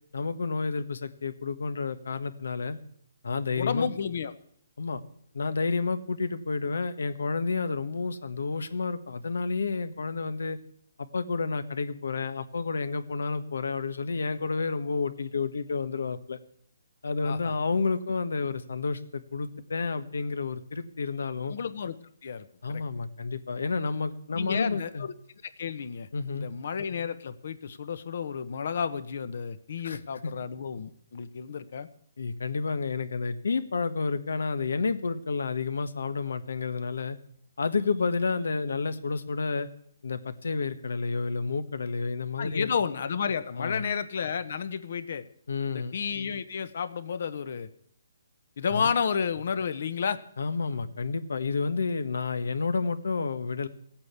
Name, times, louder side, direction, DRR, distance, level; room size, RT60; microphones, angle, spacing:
voice 1, 0.1-2.8 3.2-3.9 4.8-5.0 5.3-10.6 11.0-16.4 17.0-21.5 22.6-25.1 26.1-26.5 29.8-30.3 32.2-37.2 37.6-39.7 40.0-42.7 43.6-43.8 45.5-46.0 48.7-48.9 50.4-53.7, left 4 dB, 80° left, 12 dB, 1.4 m, -30 dB
voice 2, 3.6-4.3 17.2-17.5 21.5-22.0 22.2-22.8 24.3-25.1 25.6-26.1 26.3-31.9 42.4-45.2 45.7-47.7 48.6-50.2, left 6 dB, 55° left, 13 dB, 1.1 m, -31 dB
15.5 x 8.8 x 8.3 m, 0.67 s
hypercardioid pair, 165°, 0 cm